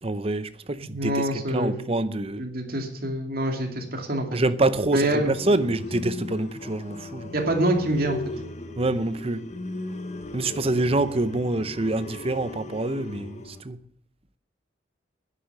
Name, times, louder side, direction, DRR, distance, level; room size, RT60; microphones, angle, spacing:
voice 1, 0.0-2.5 4.3-7.3 8.8-9.5 10.3-13.8, right 2 dB, 30° right, 0.7 m, -26 dB
voice 2, 0.9-1.9 2.4-4.4 4.9-5.4 7.3-8.2, right 1 dB, 50° right, 2.5 m, -26 dB
sound 1, 5.0-13.6, left 2 dB, 40° left, 1.2 m, -37 dB
10.5 x 10.5 x 6.6 m
head